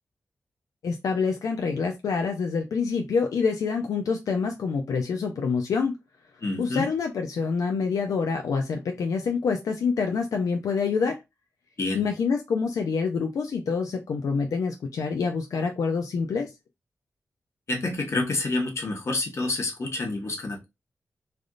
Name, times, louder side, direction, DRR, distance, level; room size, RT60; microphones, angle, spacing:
voice 1, 0.8-5.9 6.6-11.2 11.9-16.5, left 5 dB, 90° left, 0.5 m, -26 dB
voice 2, 6.4-6.9 11.8-12.1 17.7-20.7, left 2 dB, 55° left, 1.1 m, -28 dB
3.3 x 2.6 x 2.4 m
cardioid pair, 75°, 6 cm